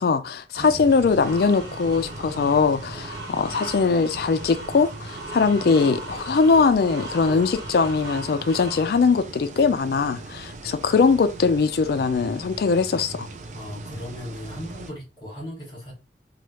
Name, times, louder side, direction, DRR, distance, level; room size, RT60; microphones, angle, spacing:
voice 1, 0.0-13.3, left 4 dB, 55° left, 0.3 m, -21 dB
sound 1, 0.6-14.9, right 3 dB, 40° right, 0.4 m, -39 dB
sound 2, 1.2-8.8, right 1 dB, 60° right, 1.2 m, -38 dB
voice 2, 13.5-15.9, left 1 dB, 25° left, 1.6 m, -37 dB
3.1 x 2.3 x 2.9 m
head